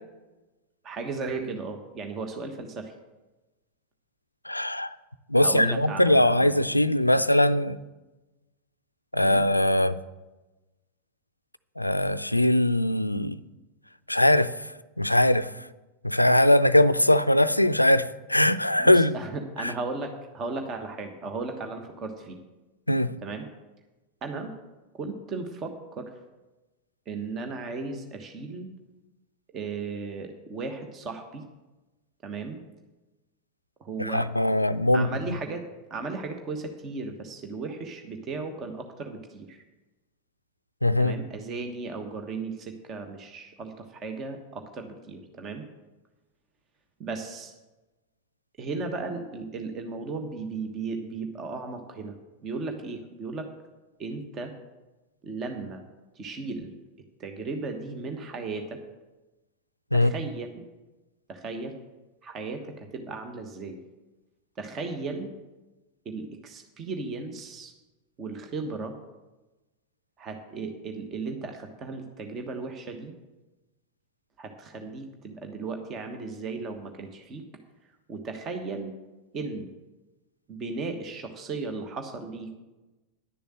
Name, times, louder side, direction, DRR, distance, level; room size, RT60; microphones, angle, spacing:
voice 1, 0.8-2.9 5.3-6.7 9.2-9.4 18.8-22.4 23.2-23.5 24.2-24.5 24.9-26.1 27.1-28.7 29.5-31.4 32.2-32.6 33.8-34.3 34.9-35.6 35.9-39.6 41.0-45.6 47.0-47.5 48.6-52.1 52.4-53.5 54.0-54.5 55.2-55.8 56.1-56.7 57.2-58.8 59.9-60.6 61.3-61.7 62.2-63.8 64.6-65.3 66.0-67.7 68.2-68.9 70.2-73.1 74.4-77.4 78.1-78.9 79.3-79.7 80.5-82.5, right 3 dB, 30° right, 5 dB, 1.2 m, -35 dB
voice 2, 4.5-4.9 5.3-7.8 9.1-10.0 11.8-13.4 14.1-14.5 15.0-15.5 16.0-19.2 19.6-19.7 22.9-23.1 34.0-35.1 40.8-41.1 59.9-60.1, left 1 dB, 85° left, 13 dB, 0.4 m, -21 dB
11.0 x 7.0 x 7.5 m, 1.1 s
figure-of-eight pair, 90°, 0 cm